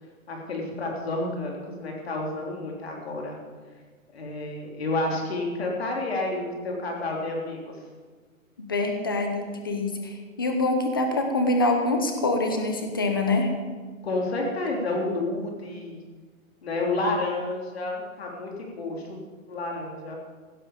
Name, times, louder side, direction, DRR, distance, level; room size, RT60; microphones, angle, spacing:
voice 1, 0.3-3.4 4.1-7.7 14.0-16.0 16.6-19.2 19.5-20.2, left 2 dB, 45° left, 0 dB, 3.5 m, -30 dB
voice 2, 8.7-13.5, left 2 dB, 15° left, 5 dB, 0.8 m, -25 dB
16.0 x 12.0 x 5.2 m, 1.5 s
hypercardioid pair, 180°, 41 cm